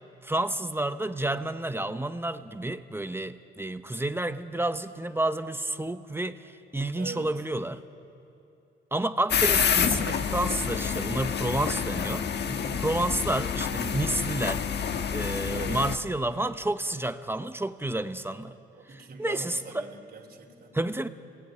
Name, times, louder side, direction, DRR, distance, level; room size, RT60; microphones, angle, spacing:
voice 1, 0.2-7.8 8.9-12.3 12.8-14.6 15.1-18.5 19.2-19.9 20.7-21.1, right 1 dB, 10° right, 10 dB, 0.9 m, -30 dB
voice 2, 1.6-2.0 6.9-7.4 12.4-12.9 15.4-15.9 18.7-20.8, right 3 dB, 50° right, 0 dB, 4.0 m, -42 dB
sound 1, 9.3-16.0, left 7 dB, 60° left, 1.4 m, -28 dB
29.0 x 20.0 x 9.2 m, 2.7 s
cardioid pair, 90°, 20 cm